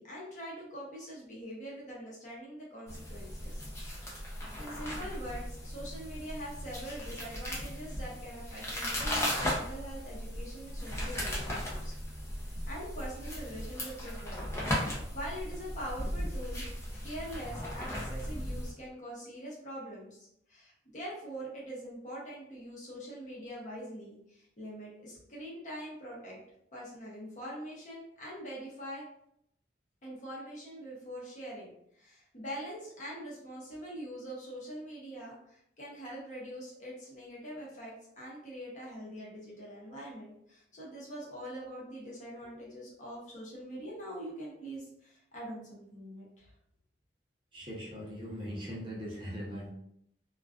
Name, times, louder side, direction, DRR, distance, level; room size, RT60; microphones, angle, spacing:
voice 1, 0.0-3.7 4.1-11.9 12.6-14.5 14.8-26.4 26.7-29.0 30.0-31.7 32.0-46.5, equal, 40° left, -5 dB, 0.8 m, -43 dB
sound 1, 2.9-18.7, equal, 15° left, 0.4 m, -37 dB
voice 2, 47.5-49.7, equal, 25° right, -6 dB, 0.7 m, -40 dB
2.3 x 2.3 x 2.4 m, 0.73 s
head